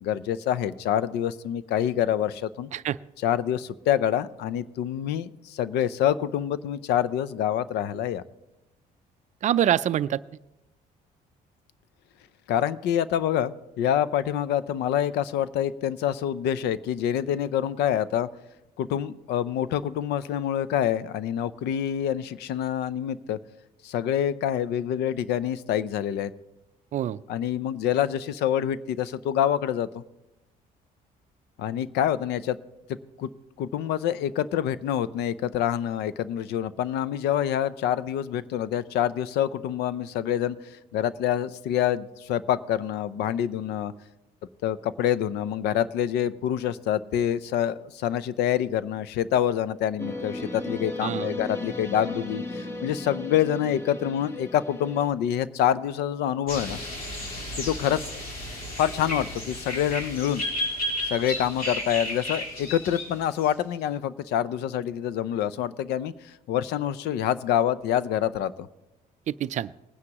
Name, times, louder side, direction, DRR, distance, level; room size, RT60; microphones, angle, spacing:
voice 1, 0.0-2.7 3.2-8.2 12.5-18.3 18.8-23.4 23.8-26.3 27.3-30.0 31.6-32.6 33.2-33.3 33.6-43.9 44.6-56.8 57.6-58.0 58.8-60.4 61.0-68.7, left 10 dB, 80° left, 17 dB, 0.5 m, -26 dB
voice 2, 9.4-10.2 26.9-27.2 51.0-51.3 69.3-69.7, right 11 dB, 45° right, 16 dB, 0.4 m, -25 dB
sound 1, 50.0-55.1, left 2 dB, 15° left, 1.1 m, -35 dB
sound 2, 56.5-63.5, left 1 dB, 60° left, 3.2 m, -33 dB
20.0 x 9.6 x 3.0 m, 0.97 s
cardioid pair, 110°, 17 cm